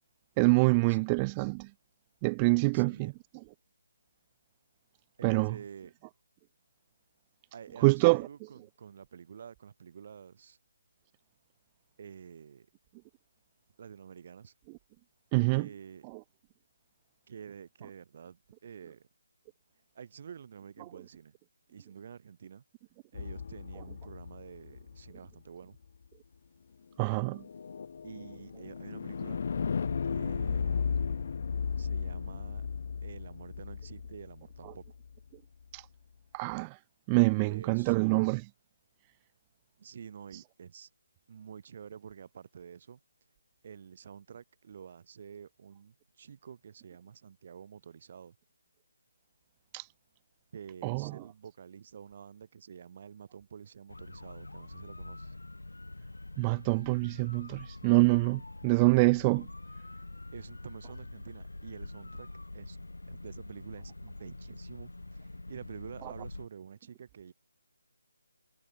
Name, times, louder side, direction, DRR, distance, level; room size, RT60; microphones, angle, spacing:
voice 1, 0.4-1.7 2.2-3.1 5.2-5.5 7.8-8.3 15.3-15.6 27.0-27.4 35.7-35.8 36.3-36.8 37.1-38.5 49.7-49.9 50.8-51.0 56.4-59.5, right 28 dB, 20° right, 0.4 m, -25 dB
voice 2, 2.7-3.1 5.2-5.9 7.5-10.6 12.0-12.7 13.8-14.5 15.5-16.1 17.3-19.1 19.9-21.3 21.7-22.6 23.1-25.8 28.0-29.4 30.0-31.2 31.8-32.7 33.0-34.8 37.3-38.0 39.8-40.9 41.3-43.0 43.6-48.4 50.5-55.3 60.3-62.8 63.0-67.3, right 7 dB, 40° right, 2.9 m, -49 dB
sound 1, 23.1-25.3 27.1-35.2, left 6 dB, 45° left, 0.6 m, -35 dB
sound 2, 53.9-66.5, left 2 dB, 75° left, 4.6 m, -45 dB
figure-of-eight pair, 150°, 0 cm